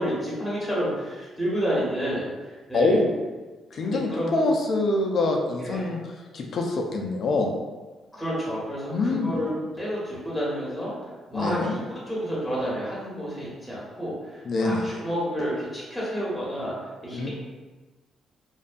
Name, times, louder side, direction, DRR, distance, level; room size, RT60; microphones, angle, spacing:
voice 1, 0.0-2.9 3.8-4.4 5.6-5.9 8.1-9.5 9.8-10.9 11.3-16.8 17.0-17.3, equal, 5° left, -7 dB, 1.1 m, -30 dB
voice 2, 2.7-3.1 3.7-6.0 6.3-7.5 8.9-9.3 11.3-11.7 14.4-14.9 17.1-17.3, left 2 dB, 55° left, 2 dB, 0.4 m, -25 dB
2.6 x 2.2 x 2.4 m, 1.3 s
cardioid pair, 90°, 0 cm